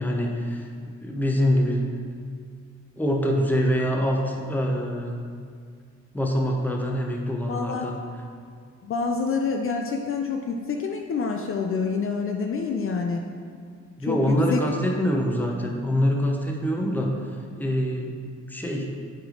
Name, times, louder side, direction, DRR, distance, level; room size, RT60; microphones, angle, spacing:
voice 1, 0.0-1.8 3.0-5.2 6.1-7.9 14.0-17.3 17.6-18.2 18.5-18.9, equal, 5° left, 0 dB, 0.8 m, -25 dB
voice 2, 7.5-7.9 8.8-13.2 14.0-14.7, left 5 dB, 45° left, 2 dB, 0.5 m, -27 dB
7.7 x 3.4 x 3.9 m, 2.1 s
cardioid pair, 90°, 30 cm